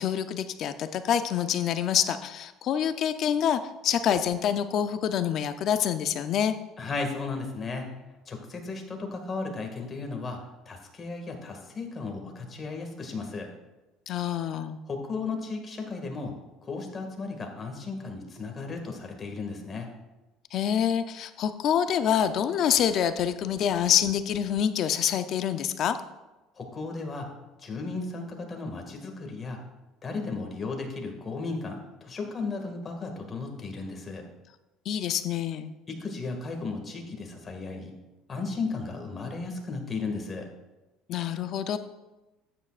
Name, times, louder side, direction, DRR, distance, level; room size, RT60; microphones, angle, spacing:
voice 1, 0.0-6.5 14.1-14.8 20.5-26.0 34.9-35.7 41.1-41.8, left 9 dB, 55° left, 10 dB, 0.6 m, -26 dB
voice 2, 6.8-7.9 8.3-10.4 10.7-13.5 14.9-16.3 16.6-19.9 26.6-27.3 27.6-29.6 30.0-34.2 35.9-37.9 38.3-40.5, left 3 dB, 30° left, 3 dB, 2.0 m, -35 dB
12.5 x 8.8 x 2.5 m, 1.1 s
supercardioid pair, 100°, 0 cm